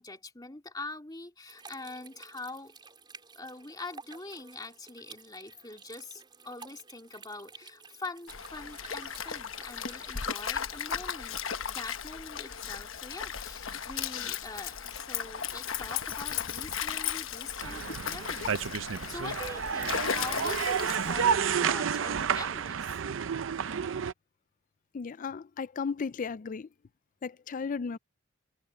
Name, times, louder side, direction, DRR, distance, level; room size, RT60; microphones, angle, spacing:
voice 1, 0.0-2.7 3.4-11.4 11.7-23.0, left 2 dB, 20° left, 2.4 m, -44 dB
sound 1, 1.5-10.4, right 4 dB, 25° right, 4.5 m, -52 dB
Stream, 8.3-21.4, left 8 dB, 75° left, 1.1 m, -36 dB
sound 2, 17.6-24.1, right 7 dB, 65° right, 0.5 m, -30 dB
voice 2, 24.9-26.7 27.2-28.0, left 5 dB, 40° left, 0.4 m, -35 dB
head